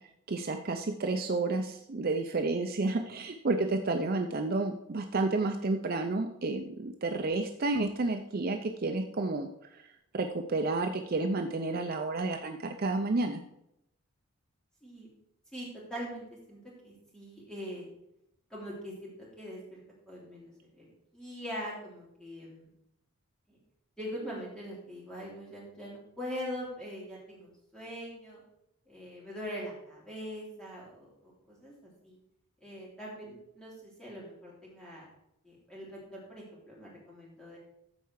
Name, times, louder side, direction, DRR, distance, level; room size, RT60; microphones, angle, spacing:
voice 1, 0.3-9.5 9.7-9.8 10.1-13.4, right 3 dB, 40° right, 5 dB, 0.5 m, -31 dB
voice 2, 15.5-17.9 18.5-19.8 20.1-20.9 21.1-22.7 23.5-23.6 24.0-28.4 28.9-32.2 32.6-35.1 35.4-37.6, equal, 5° left, -6 dB, 3.2 m, -42 dB
14.0 x 4.7 x 4.7 m, 0.80 s
head